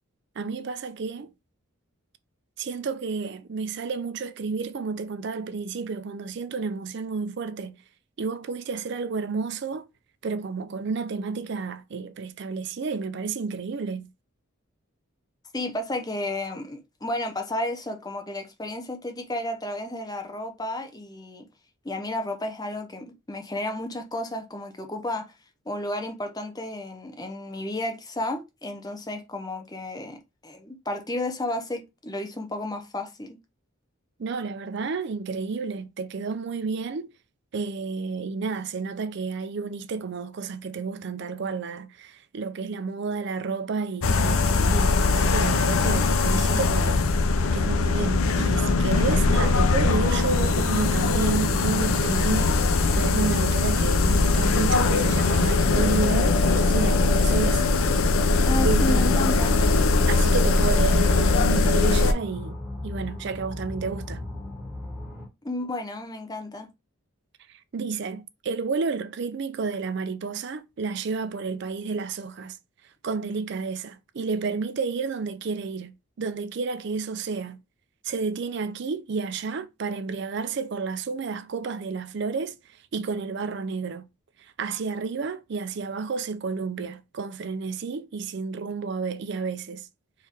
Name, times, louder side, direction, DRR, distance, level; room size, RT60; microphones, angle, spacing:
voice 1, 0.4-1.3 2.6-7.8 8.2-9.8 10.2-14.1 34.2-37.1 37.5-47.0 47.5-57.6 58.6-59.3 60.1-64.2 67.7-72.6 73.0-77.6 78.0-84.1 84.4-89.9, right 4 dB, 55° right, 0.4 m, -31 dB
voice 2, 15.5-21.5 21.8-25.3 25.7-33.4 58.5-59.6 65.4-66.7, left 1 dB, 20° left, 0.7 m, -32 dB
sound 1, 44.0-62.1, left 3 dB, 80° left, 0.6 m, -21 dB
sound 2, 47.4-65.3, left 1 dB, 5° right, 1.6 m, -37 dB
4.5 x 3.2 x 3.5 m
head